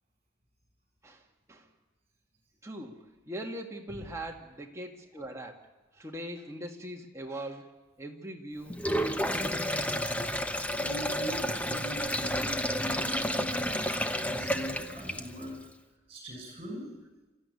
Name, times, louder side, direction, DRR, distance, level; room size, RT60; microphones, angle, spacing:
voice 1, 1.0-1.7 2.6-9.9, right 1 dB, 15° right, 1 dB, 1.9 m, -42 dB
Sink (filling or washing), 8.7-15.5, equal, 5° left, 0.7 m, -31 dB
voice 2, 10.7-15.6 16.1-17.0, equal, 30° right, 2 dB, 6.5 m, -41 dB
27.5 x 14.0 x 9.7 m, 1.2 s
head